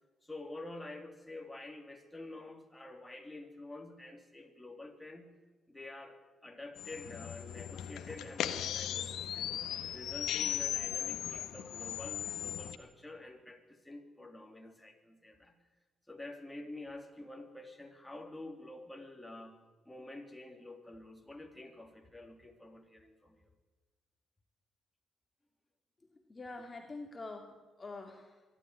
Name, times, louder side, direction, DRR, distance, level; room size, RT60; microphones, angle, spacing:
voice 1, 0.2-5.3 5.7-9.5 9.9-15.6 16.1-19.6 19.8-23.5, left 2 dB, 10° left, 2 dB, 3.3 m, -48 dB
sound 1, 6.8-12.7, left 10 dB, 80° left, 1.5 m, -38 dB
voice 2, 26.1-28.4, left 3 dB, 25° left, 2 dB, 2.4 m, -46 dB
23.5 x 13.0 x 9.9 m, 1.2 s
cardioid pair, 90°, 0 cm